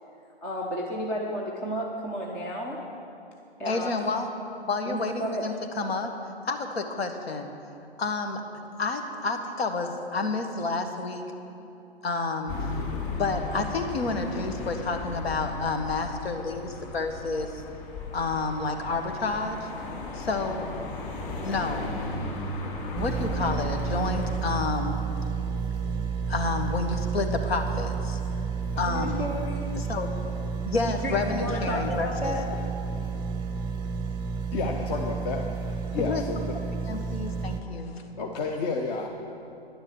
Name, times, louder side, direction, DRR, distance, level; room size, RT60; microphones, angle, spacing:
voice 1, 0.4-2.8 3.6-3.9 4.9-5.5 28.7-29.8 30.8-32.4, equal, 5° left, -1 dB, 0.3 m, -32 dB
voice 2, 3.6-4.3 4.7-6.1 6.4-7.5 8.0-8.4 8.8-11.2 12.0-12.8 13.1-17.6 18.1-19.7 20.1-20.7 21.4-21.9 22.6-25.0 26.3-28.2 28.8-29.3 29.8-30.1 30.6-32.3 36.0-36.2 36.8-38.0, left 3 dB, 70° left, 6 dB, 1.6 m, -30 dB
sound 1, 12.5-24.4, left 2 dB, 20° left, 2.6 m, -36 dB
sound 2, 22.9-37.6, right 5 dB, 15° right, 0.7 m, -31 dB
voice 3, 34.5-35.4 35.7-36.6 38.2-39.1, left 3 dB, 40° left, 1 dB, 1.0 m, -30 dB
10.5 x 9.7 x 7.2 m, 2.9 s
hypercardioid pair, 135°, 32 cm